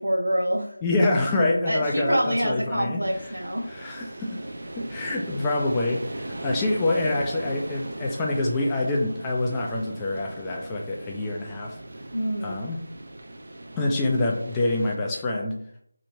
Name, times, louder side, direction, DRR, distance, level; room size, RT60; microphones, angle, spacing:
voice 1, 0.0-0.7 1.7-3.7 12.1-12.6, equal, 70° right, 1 dB, 0.9 m, -26 dB
voice 2, 0.8-3.0 3.7-4.4 4.8-11.8 12.4-12.8 13.7-15.6, left 2 dB, 10° left, -2 dB, 0.3 m, -26 dB
sound 1, 3.0-15.0, right 1 dB, 40° right, 0.5 m, -39 dB
3.3 x 2.9 x 2.6 m, 0.65 s
figure-of-eight pair, 165°, 0 cm